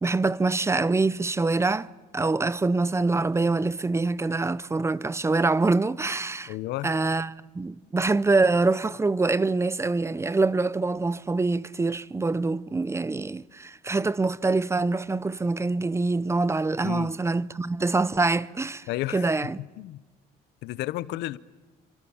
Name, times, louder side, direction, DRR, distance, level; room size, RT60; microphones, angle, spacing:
voice 1, 0.0-1.9 2.1-6.5 6.8-19.6, right 3 dB, 15° right, 0.8 m, -25 dB
voice 2, 6.5-6.9 16.8-17.1 18.9-20.0 20.6-21.4, left 16 dB, 85° left, 0.9 m, -32 dB
29.0 x 25.0 x 7.2 m
cardioid pair, 110°, 17 cm